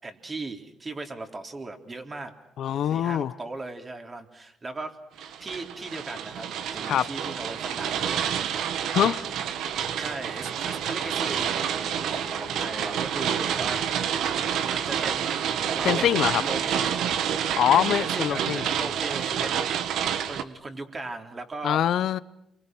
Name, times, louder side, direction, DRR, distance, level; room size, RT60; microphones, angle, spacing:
voice 1, 0.0-2.3 2.9-5.0 5.4-8.2 10.0-11.7 12.1-13.8 14.6-15.4 15.7-16.1 16.3-17.0 17.7-19.6 20.3-21.9, right 2 dB, 30° right, 3.7 m, -37 dB
voice 2, 2.6-3.3 6.9-7.1 8.9-9.2 15.8-16.4 17.6-18.6 21.6-22.2, left 10 dB, 70° left, 0.9 m, -23 dB
sound 1, 5.2-20.4, right 8 dB, 80° right, 1.5 m, -28 dB
Brass instrument, 10.2-14.7, left 4 dB, 30° left, 2.7 m, -46 dB
30.0 x 23.5 x 6.3 m
cardioid pair, 90°, 0 cm